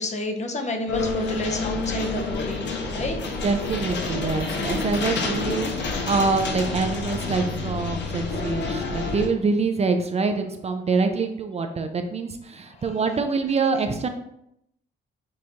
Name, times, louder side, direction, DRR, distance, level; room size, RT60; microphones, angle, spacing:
voice 1, 0.0-3.2 12.7-13.0, left 2 dB, 35° left, 5 dB, 0.7 m, -30 dB
sound 1, 0.9-9.3, left 3 dB, 65° left, 0.8 m, -28 dB
voice 2, 3.4-14.1, right 4 dB, 30° right, 6 dB, 0.4 m, -25 dB
6.2 x 2.5 x 2.9 m, 0.76 s
cardioid pair, 90°, 20 cm